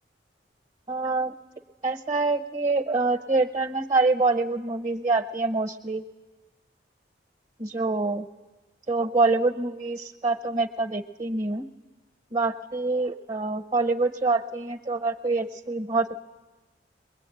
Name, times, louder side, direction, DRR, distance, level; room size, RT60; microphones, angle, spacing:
voice 1, 0.9-1.3 1.8-6.0 7.6-8.3 8.9-11.7 12.3-16.2, right 3 dB, 30° right, 5 dB, 0.8 m, -25 dB
23.0 x 21.0 x 9.0 m, 1.2 s
head